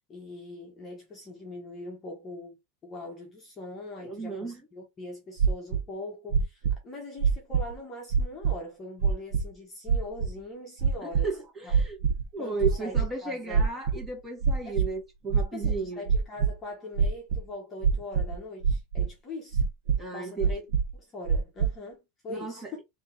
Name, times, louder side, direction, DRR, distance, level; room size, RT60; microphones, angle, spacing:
voice 1, 0.1-11.3 11.6-11.7 12.4-13.7 14.6-14.8 15.5-19.6 20.1-20.6 20.9-22.8, left 2 dB, 20° left, 1.2 m, -42 dB
voice 2, 4.0-4.6 11.0-12.0 12.3-16.1 20.0-20.5 22.3-22.7, right 4 dB, 10° right, 1.9 m, -34 dB
sound 1, 5.4-5.8 6.3-6.8 7.2-7.7 8.1-8.5 9.0-9.4 9.9-10.3 10.8-11.3 11.7-12.2 12.6-13.1 13.5-14.1 14.4-14.9 15.3-16.5 17.0-17.4 17.8-18.4 18.6-19.1 19.5-20.0 20.4-20.9 21.3-21.7, right 6 dB, 65° right, 0.9 m, -24 dB
3.6 x 2.9 x 3.9 m
supercardioid pair, 155°, 0 cm